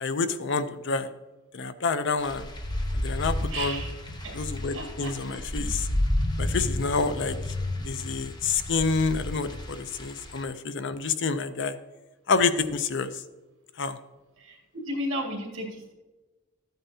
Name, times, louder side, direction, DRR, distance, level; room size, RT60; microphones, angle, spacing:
voice 1, 0.0-1.1 1.5-2.4 3.0-3.8 4.3-5.9 6.4-7.4 7.8-11.7 12.3-13.1 13.8-14.0, left 4 dB, 55° left, 11 dB, 0.5 m, -28 dB
sound 1, 2.2-10.4, left 1 dB, 20° left, 0.8 m, -31 dB
voice 2, 3.5-3.9 4.2-5.7 14.4-14.6 14.8-15.9, equal, 60° right, 0 dB, 2.2 m, -35 dB
13.0 x 9.1 x 2.8 m, 1.1 s
head